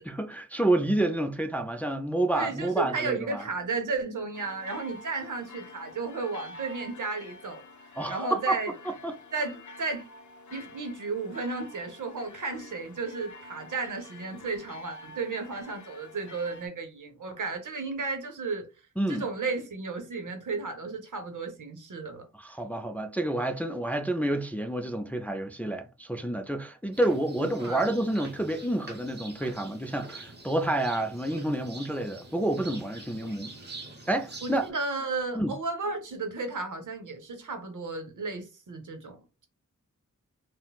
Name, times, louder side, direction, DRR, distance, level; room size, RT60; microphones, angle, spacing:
voice 1, 0.0-3.4 8.0-8.6 8.9-9.2 19.0-19.3 22.4-33.5 34.1-34.7 35.3-35.5, right 1 dB, 5° left, 0.3 m, -29 dB
voice 2, 2.3-8.7 9.3-10.1 10.5-18.7 19.1-22.2 27.4-27.9 34.4-39.5, right 3 dB, 80° right, 0.7 m, -34 dB
sound 1, 4.3-16.7, left 2 dB, 75° left, 0.5 m, -48 dB
sound 2, 26.9-34.7, right 2 dB, 35° right, 0.8 m, -45 dB
4.0 x 2.0 x 2.2 m
wide cardioid pair, 80°, 30 cm